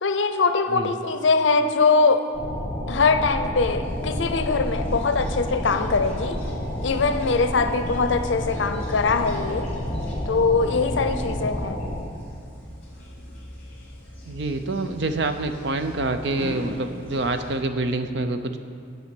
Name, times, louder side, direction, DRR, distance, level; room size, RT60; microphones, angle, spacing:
voice 1, 0.0-2.2 2.9-6.4 6.8-9.7 10.3-11.8, left 4 dB, 70° left, 8 dB, 0.6 m, -22 dB
sound 1, 2.3-12.0, left 1 dB, 30° left, 1.3 m, -30 dB
sound 2, 3.8-17.6, equal, 10° left, 1.9 m, -43 dB
voice 2, 10.8-11.4 14.2-18.6, right 2 dB, 60° right, 8 dB, 0.6 m, -27 dB
8.7 x 5.5 x 7.7 m, 2.3 s
head